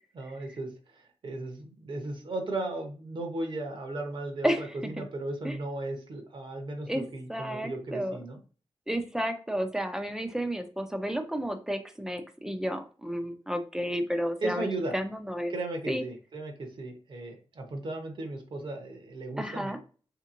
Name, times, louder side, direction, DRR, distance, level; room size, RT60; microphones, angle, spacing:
voice 1, 0.1-8.4 14.4-15.0 15.5-19.8, right 2 dB, 55° right, 3 dB, 0.9 m, -36 dB
voice 2, 7.3-8.2 8.9-14.7 14.9-15.5 15.9-16.0 19.4-19.8, equal, 5° right, 7 dB, 0.5 m, -31 dB
3.4 x 2.9 x 2.5 m, 0.37 s
wide cardioid pair, 110°, 10 cm